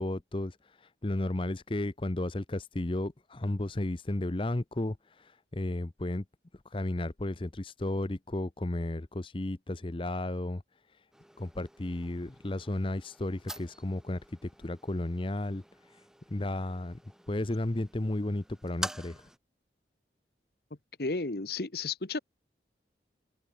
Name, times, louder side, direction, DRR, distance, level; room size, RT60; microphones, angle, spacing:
voice 1, 0.0-6.2 6.5-11.1 11.4-17.0 17.3-19.3, left 1 dB, 30° left, 0.7 m, -34 dB
sound 1, 11.1-19.4, right 1 dB, 5° right, 1.6 m, -46 dB
voice 2, 21.0-22.2, left 3 dB, 60° left, 1.2 m, -33 dB
open air
head